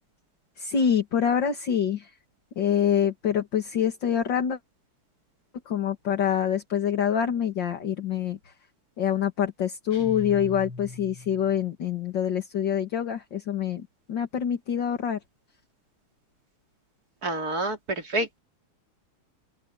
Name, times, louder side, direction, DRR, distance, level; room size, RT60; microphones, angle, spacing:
voice 1, 0.6-2.1 2.6-4.6 5.7-8.4 9.0-15.2, left 8 dB, 55° left, 2.5 m, -26 dB
sound 1, 9.9-11.6, left 3 dB, 85° left, 5.8 m, -40 dB
voice 2, 17.2-18.4, right 2 dB, 45° right, 3.1 m, -28 dB
open air
omnidirectional pair, 2.4 m